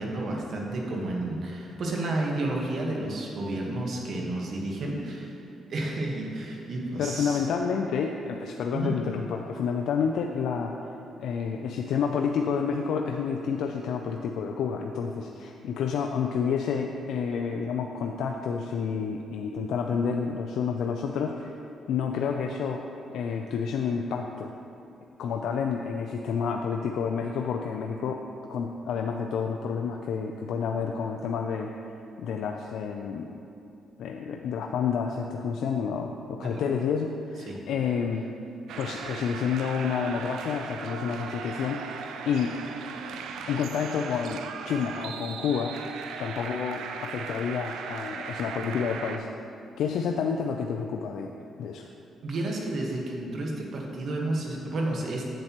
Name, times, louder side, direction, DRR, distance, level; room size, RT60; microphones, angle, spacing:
voice 1, 0.0-5.4 5.7-7.5 8.7-9.0 36.4-36.6 37.5-37.6 51.8-51.9 52.2-55.2, right 2 dB, 60° right, -1 dB, 1.2 m, -31 dB
voice 2, 7.0-10.8 11.2-21.5 21.9-22.8 23.1-24.5 25.2-28.2 28.5-33.4 34.0-38.3 38.8-42.0 42.3-42.5 43.5-45.8 46.2-49.3 49.8-51.8, left 6 dB, 75° left, 2 dB, 0.3 m, -29 dB
sound 1, 38.7-49.2, right 6 dB, 80° right, 0.4 m, -38 dB
7.9 x 7.5 x 2.9 m, 2.7 s
cardioid pair, 90°, 0 cm